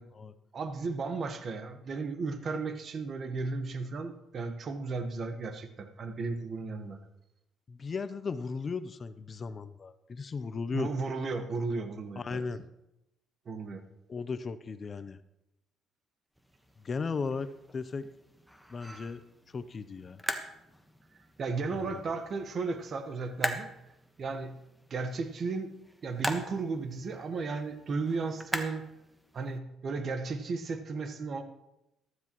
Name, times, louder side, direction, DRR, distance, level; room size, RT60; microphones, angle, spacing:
voice 1, 0.5-7.0 10.7-12.4 13.5-13.8 21.4-23.7 24.2-24.6 24.9-25.7 26.0-28.8 29.3-31.4, right 4 dB, 45° right, 9 dB, 1.2 m, -34 dB
voice 2, 7.7-10.9 12.2-12.7 14.1-15.2 16.8-18.0 18.7-19.2 19.5-20.2 21.7-22.0, left 4 dB, 35° left, 14 dB, 0.6 m, -36 dB
sound 1, 16.4-29.6, equal, 5° right, 1.2 m, -42 dB
14.5 x 13.0 x 3.0 m, 0.90 s
cardioid pair, 95°, 0 cm